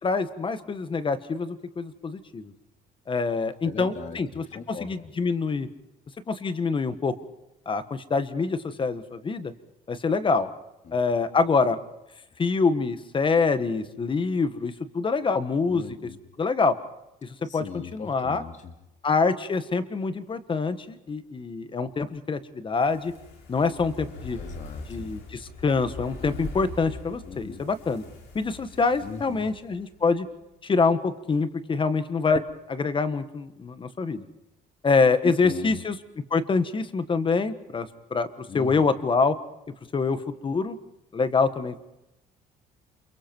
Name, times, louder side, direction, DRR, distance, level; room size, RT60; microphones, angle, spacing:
voice 1, 0.0-2.5 3.1-5.7 6.3-7.1 7.6-9.5 9.9-10.5 10.9-11.8 12.4-15.8 16.4-16.7 17.2-18.4 19.0-23.1 23.5-24.4 24.9-28.0 28.3-30.3 30.6-32.4 32.7-34.2 34.8-36.0 36.3-39.3 39.9-40.8 41.1-41.8, left 4 dB, 30° left, 12 dB, 1.5 m, -25 dB
voice 2, 3.6-4.2 4.5-5.0 10.9-11.0 15.7-16.2 17.4-18.7 24.4-25.1 27.2-27.6 29.0-29.5 35.4-35.8 38.5-38.9, left 6 dB, 45° left, 6 dB, 2.8 m, -39 dB
Fire, 22.7-30.1 30.4-30.5, left 2 dB, 85° left, 6.2 m, -42 dB
28.5 x 23.0 x 4.6 m, 0.91 s
cardioid pair, 110°, 17 cm